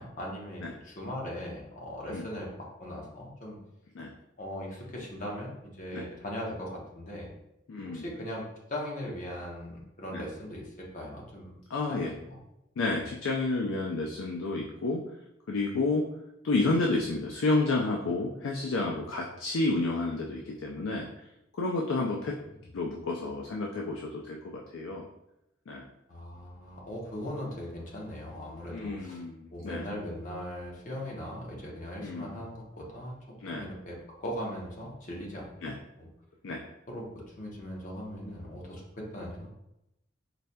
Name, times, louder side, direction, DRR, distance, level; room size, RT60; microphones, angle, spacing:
voice 1, 0.0-3.6 4.4-7.3 7.8-8.4 8.7-11.6 11.9-12.0 12.3-12.4 26.1-29.2 29.5-33.2 33.5-36.1 36.9-37.1 37.4-39.5, equal, 45° left, -2 dB, 0.9 m, -39 dB
voice 2, 7.7-8.1 10.1-10.2 11.7-12.1 12.8-15.0 15.5-16.0 16.4-21.1 21.6-22.3 22.7-25.0 25.7-25.9 28.7-29.9 32.0-32.4 33.4-33.7 35.6-35.8 36.4-36.7, left 2 dB, 85° left, 0 dB, 0.4 m, -30 dB
4.1 x 3.2 x 2.2 m, 0.87 s
head